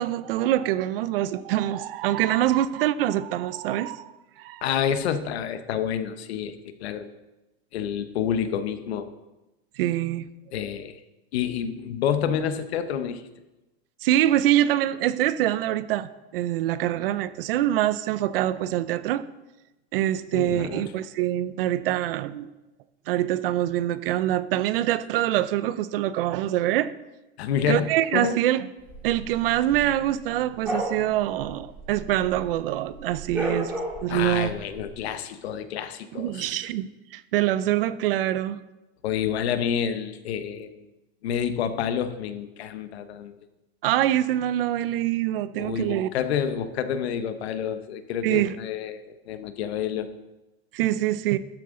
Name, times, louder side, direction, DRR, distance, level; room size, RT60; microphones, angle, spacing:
voice 1, 0.0-4.1 4.4-4.6 9.8-10.3 14.0-19.2 19.9-22.5 23.1-26.9 27.7-28.7 29.0-34.5 36.1-38.6 43.8-46.1 48.2-48.6 50.7-51.4, right 13 dB, 60° right, 15 dB, 0.6 m, -25 dB
voice 2, 4.6-7.1 7.7-9.1 10.5-11.0 11.3-13.2 20.3-20.9 27.4-28.4 34.1-36.6 39.0-40.9 41.2-43.3 45.6-50.1, left 8 dB, 75° left, 10 dB, 1.0 m, -28 dB
Cão latindo (fraco), 28.9-32.6 32.8-34.9, right 1 dB, 5° right, 2.1 m, -33 dB
13.0 x 7.6 x 3.8 m, 1.0 s
supercardioid pair, 165°, 32 cm